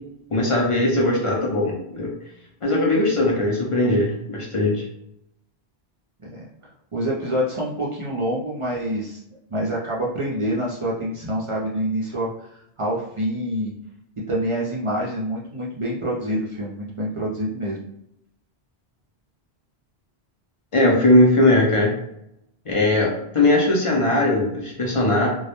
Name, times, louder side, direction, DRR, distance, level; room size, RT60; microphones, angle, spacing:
voice 1, 0.3-2.1 2.6-4.8 20.7-21.9 22.7-25.3, left 1 dB, 45° left, -2 dB, 0.4 m, -19 dB
voice 2, 6.9-9.2 9.5-13.7 14.3-17.8, equal, 45° right, -5 dB, 0.4 m, -26 dB
2.2 x 2.0 x 2.8 m, 0.80 s
omnidirectional pair, 1.1 m